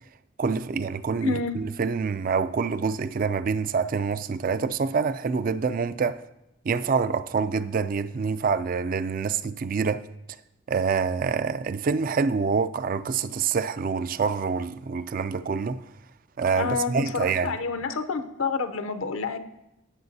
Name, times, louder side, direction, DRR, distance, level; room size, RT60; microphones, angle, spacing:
voice 1, 0.4-6.2 6.6-10.0 10.7-15.8 16.4-17.6, right 5 dB, 40° right, 0.3 m, -26 dB
voice 2, 1.2-1.6 16.6-19.4, left 4 dB, 75° left, 0.7 m, -29 dB
17.0 x 7.1 x 2.7 m
head